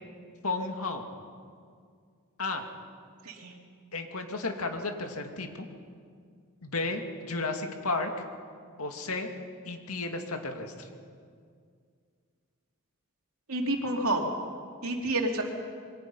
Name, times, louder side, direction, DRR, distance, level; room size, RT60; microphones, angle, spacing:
voice 1, 0.4-1.1 2.4-2.7 3.9-5.7 6.6-8.1 8.8-9.3 9.6-10.9, left 3 dB, 80° left, 4 dB, 2.3 m, -33 dB
voice 2, 13.5-14.3 14.8-15.4, right 1 dB, 75° right, 1 dB, 3.1 m, -29 dB
27.0 x 22.5 x 5.6 m, 2.2 s
head